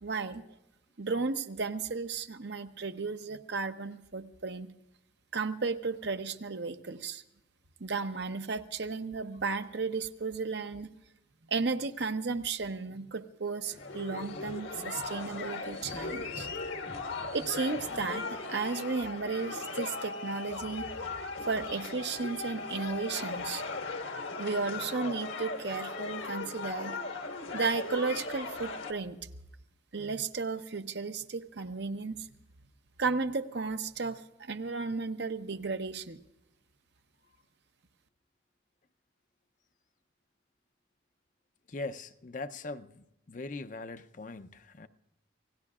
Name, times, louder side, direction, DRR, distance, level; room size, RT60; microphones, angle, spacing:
voice 1, 0.0-0.4 1.0-4.7 5.3-7.2 7.8-10.9 11.5-16.5 17.3-20.9 21.5-23.6 24.2-27.0 27.5-29.2 29.9-32.3 33.0-36.2, right 4 dB, 60° right, 0.8 m, -34 dB
sound 1, 13.6-28.9, left 3 dB, 80° left, 1.6 m, -38 dB
voice 2, 41.7-44.9, left 3 dB, 40° left, 0.6 m, -41 dB
27.5 x 18.0 x 2.4 m
head